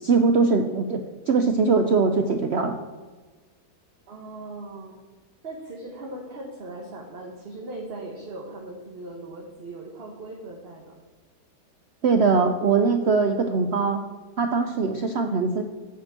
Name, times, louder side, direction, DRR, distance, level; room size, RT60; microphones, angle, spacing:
voice 1, 0.0-1.0 1.3-2.7 12.0-14.0 14.4-15.6, right 4 dB, 70° right, 5 dB, 0.6 m, -21 dB
voice 2, 4.1-5.0 5.4-11.0, right 2 dB, 40° right, -1 dB, 1.2 m, -39 dB
7.9 x 5.3 x 7.5 m, 1.3 s
omnidirectional pair, 1.9 m